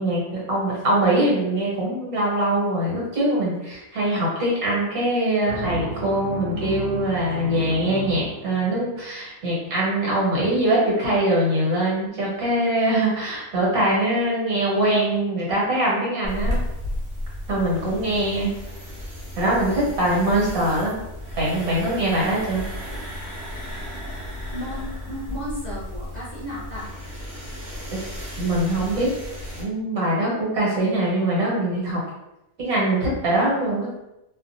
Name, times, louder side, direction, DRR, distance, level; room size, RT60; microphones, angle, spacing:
voice 1, 0.0-16.6 17.5-18.5 19.4-21.0 21.4-22.6 27.9-28.0 28.4-29.1 29.6-32.0 32.6-33.9, right 1 dB, 65° right, -5 dB, 1.4 m, -22 dB
sound 1, 5.5-9.1, right 4 dB, 85° right, 1.2 m, -33 dB
sound 2, 16.2-29.6, left 1 dB, 50° right, 1.0 m, -33 dB
voice 2, 24.5-26.9, left 1 dB, 45° left, -9 dB, 0.9 m, -34 dB
2.9 x 2.3 x 2.6 m, 0.90 s
omnidirectional pair, 1.7 m